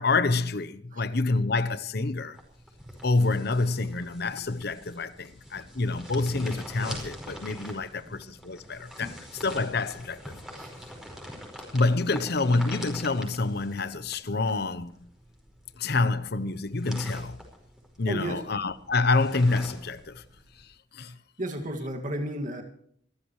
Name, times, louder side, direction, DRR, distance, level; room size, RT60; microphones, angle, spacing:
voice 1, 0.0-2.4 3.0-9.1 9.4-10.2 11.7-14.9 15.8-17.4 18.0-20.2 20.9-21.1, left 3 dB, 60° left, 0.9 m, -27 dB
sound 1, 2.3-20.6, equal, 5° right, 5.0 m, -44 dB
voice 2, 18.1-18.4 21.4-22.6, right 1 dB, 45° right, 2.2 m, -33 dB
26.0 x 13.5 x 3.2 m
head